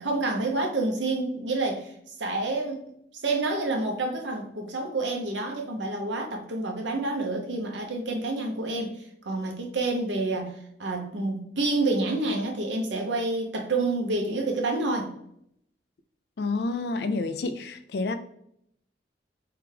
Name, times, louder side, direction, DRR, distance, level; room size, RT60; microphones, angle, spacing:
voice 1, 0.0-1.9 2.2-2.8 3.2-15.1, right 2 dB, 85° right, 2 dB, 0.9 m, -28 dB
voice 2, 16.4-18.2, left 3 dB, 60° left, 10 dB, 0.4 m, -29 dB
3.4 x 3.3 x 3.3 m, 0.71 s
head